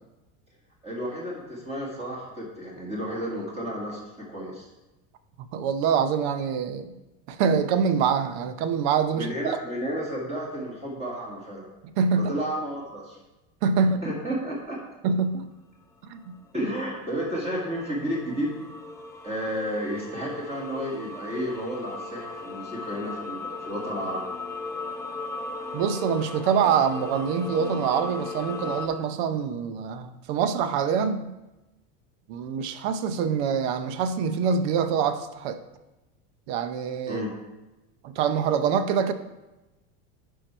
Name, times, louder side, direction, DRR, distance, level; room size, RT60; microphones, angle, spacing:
voice 1, 0.8-4.7 9.1-11.7 12.1-13.2 13.8-14.8 16.5-18.6 19.2-24.3 37.1-37.3, equal, 20° right, -5 dB, 1.9 m, -32 dB
voice 2, 5.5-6.9 7.3-9.6 12.0-12.3 13.6-14.0 15.0-15.4 16.1-16.3 25.7-31.3 32.3-35.6 36.5-37.2 38.2-39.1, right 6 dB, 65° right, 10 dB, 0.8 m, -25 dB
sound 1, 16.2-28.9, left 3 dB, 10° left, 0.6 m, -37 dB
11.0 x 4.7 x 4.4 m, 1.0 s
supercardioid pair, 150°, 33 cm